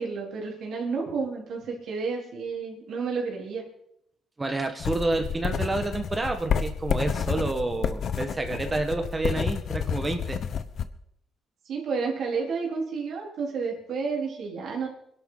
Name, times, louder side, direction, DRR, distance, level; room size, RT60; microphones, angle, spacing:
voice 1, 0.0-3.6 11.7-14.9, right 5 dB, 70° right, -1 dB, 4.1 m, -31 dB
voice 2, 4.4-10.4, right 2 dB, 25° right, 6 dB, 1.6 m, -29 dB
sound 1, 4.8-10.8, left 7 dB, 60° left, 0.9 m, -29 dB
21.5 x 11.5 x 4.1 m, 0.76 s
cardioid pair, 90°, 0 cm